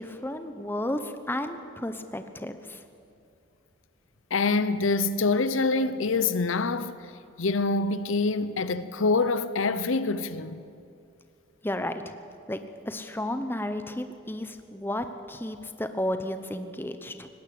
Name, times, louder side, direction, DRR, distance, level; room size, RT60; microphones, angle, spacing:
voice 1, 0.0-2.8 11.6-12.1 12.5-17.3, left 1 dB, 10° left, 0.8 m, -33 dB
voice 2, 4.3-7.0 7.4-10.6, left 3 dB, 75° left, 0.7 m, -25 dB
19.0 x 16.5 x 8.5 m
head